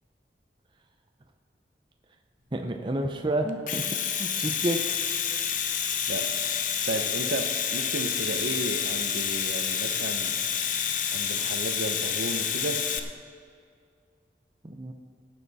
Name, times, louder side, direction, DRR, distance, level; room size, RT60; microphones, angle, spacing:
voice 1, 2.5-3.8 4.2-5.0 14.6-14.9, right 1 dB, 25° right, 4 dB, 0.6 m, -29 dB
Domestic sounds home sounds, 3.5-13.0, left 8 dB, 45° left, 0.7 m, -28 dB
voice 2, 6.1-6.5 6.9-10.3 11.1-12.9, right 2 dB, 75° right, 7 dB, 0.8 m, -34 dB
17.5 x 8.3 x 4.1 m, 2.3 s
head